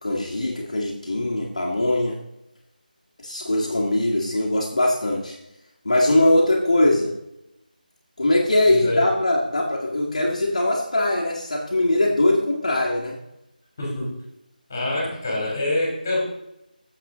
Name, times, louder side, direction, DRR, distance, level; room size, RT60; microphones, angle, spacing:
voice 1, 0.0-2.2 3.2-5.4 5.9-7.1 8.2-13.2, left 1 dB, 45° left, -3 dB, 1.8 m, -21 dB
voice 2, 8.6-9.1 13.8-14.1 14.7-16.3, left 1 dB, 15° left, -2 dB, 3.0 m, -25 dB
15.0 x 7.3 x 3.8 m, 0.87 s
figure-of-eight pair, 180°, 5 cm